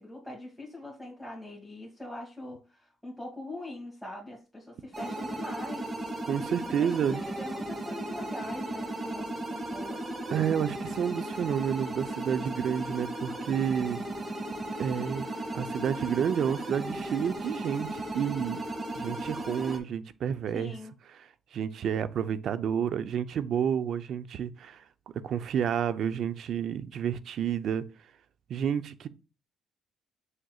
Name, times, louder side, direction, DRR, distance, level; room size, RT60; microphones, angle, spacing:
voice 1, 0.0-6.0 6.7-10.0 20.5-20.9, left 1 dB, ahead, 2.4 m, -42 dB
sound 1, 4.9-19.8, right 1 dB, 30° right, 2.2 m, -36 dB
voice 2, 6.3-7.2 10.3-14.0 14.8-15.3 15.5-18.6 18.9-20.7 21.5-24.8 25.2-27.8 28.5-29.1, right 8 dB, 70° right, 0.6 m, -30 dB
7.5 x 6.5 x 2.4 m
cardioid pair, 90°, 0 cm